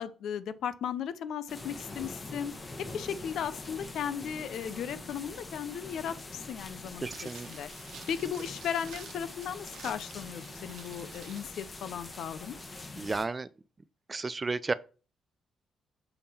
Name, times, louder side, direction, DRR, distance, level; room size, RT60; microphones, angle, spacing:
voice 1, 0.0-2.5 2.8-12.6, left 8 dB, 70° left, 0.6 m, -36 dB
sound 1, 1.5-13.2, left 2 dB, 25° left, 1.2 m, -44 dB
voice 2, 7.0-7.5 13.0-13.5 14.1-14.7, right 3 dB, 25° right, 0.4 m, -32 dB
sound 2, 7.1-11.5 11.8-11.9, right 7 dB, 75° right, 1.0 m, -51 dB
6.9 x 3.6 x 4.3 m
cardioid pair, 90°, 0 cm